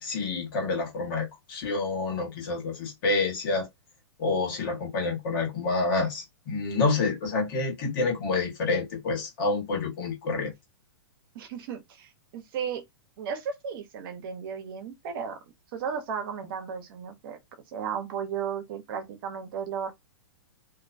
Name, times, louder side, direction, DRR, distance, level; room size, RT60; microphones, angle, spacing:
voice 1, 0.0-3.7 4.2-10.5, left 3 dB, 55° left, 1.4 m, -28 dB
voice 2, 11.3-12.8 13.2-15.4 15.7-17.4 17.7-19.9, right 7 dB, 60° right, 0.8 m, -34 dB
2.6 x 2.2 x 2.6 m
hypercardioid pair, 125°, 13 cm